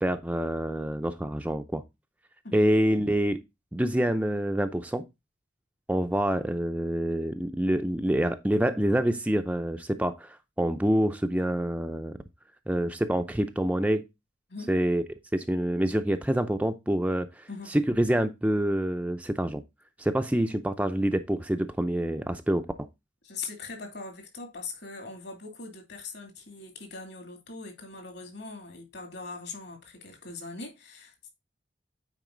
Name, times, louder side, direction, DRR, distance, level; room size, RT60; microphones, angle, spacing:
voice 1, 0.0-1.8 2.5-3.4 3.7-5.1 5.9-12.2 12.7-14.0 14.7-15.0 15.3-19.6 20.0-22.9, right 1 dB, 5° right, 0.4 m, -26 dB
voice 2, 23.2-31.3, left 4 dB, 60° left, 2.6 m, -41 dB
9.1 x 4.6 x 3.7 m
head